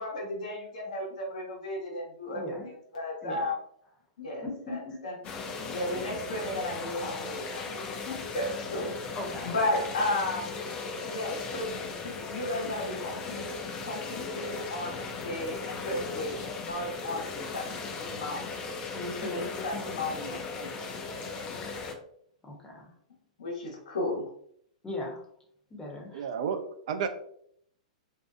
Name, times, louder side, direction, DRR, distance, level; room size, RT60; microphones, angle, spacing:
voice 1, 0.0-2.4 2.9-3.6 4.2-5.1 5.7-8.9 9.5-10.6 11.1-13.5 13.8-17.7 18.1-18.5 19.2-20.8 23.4-24.2, left 1 dB, 75° left, -1 dB, 1.0 m, -34 dB
voice 2, 2.2-2.7 3.2-3.5 4.4-5.0 9.1-9.5 18.9-20.1 22.4-22.9 24.8-25.3 25.7-26.3, left 2 dB, 15° left, -1 dB, 0.8 m, -39 dB
sound 1, 5.2-21.9, left 4 dB, 30° left, 0.5 m, -37 dB
voice 3, 26.1-27.1, right 7 dB, 60° right, 7 dB, 0.4 m, -31 dB
2.6 x 2.2 x 2.4 m, 0.66 s
hypercardioid pair, 125°, 4 cm